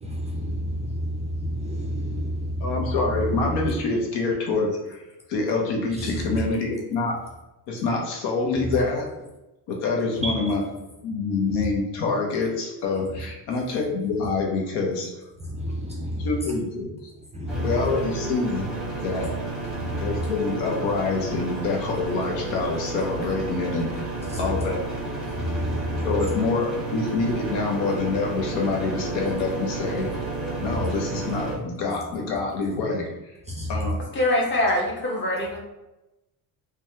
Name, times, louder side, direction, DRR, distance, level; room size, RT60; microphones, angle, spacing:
voice 1, 0.0-2.9 6.0-6.4 10.2-10.5 15.4-16.4 17.3-17.9 19.7-20.3 24.3-24.5 25.3-26.2 30.6-30.8 33.5-33.9, equal, 20° right, -2 dB, 0.3 m, -30 dB
voice 2, 2.6-5.0 5.3-7.2 7.7-9.3 9.7-10.6 11.0-15.1 16.2-17.1 17.6-18.7 19.0-19.3 20.0-24.1 24.4-25.1 26.0-30.1 30.6-33.1 33.7-34.0, left 3 dB, 80° left, 0 dB, 0.8 m, -26 dB
sound 1, 17.5-31.6, right 3 dB, ahead, 0.8 m, -32 dB
voice 3, 34.1-35.6, left 1 dB, 30° left, -2 dB, 0.8 m, -23 dB
3.2 x 2.2 x 2.7 m, 0.98 s
cardioid pair, 110°, 40 cm